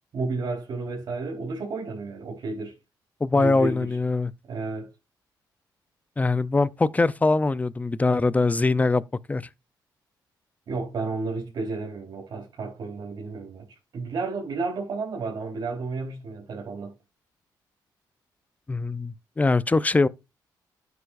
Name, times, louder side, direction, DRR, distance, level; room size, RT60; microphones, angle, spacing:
voice 1, 0.1-2.7 3.3-4.0 4.5-4.9 10.7-13.7 13.9-16.9, right 3 dB, 60° right, 3.8 m, -32 dB
voice 2, 3.2-4.3 6.2-9.0 9.3-9.5 18.7-20.1, left 3 dB, 20° left, 0.6 m, -22 dB
12.5 x 8.2 x 2.6 m
cardioid pair, 90°, 8 cm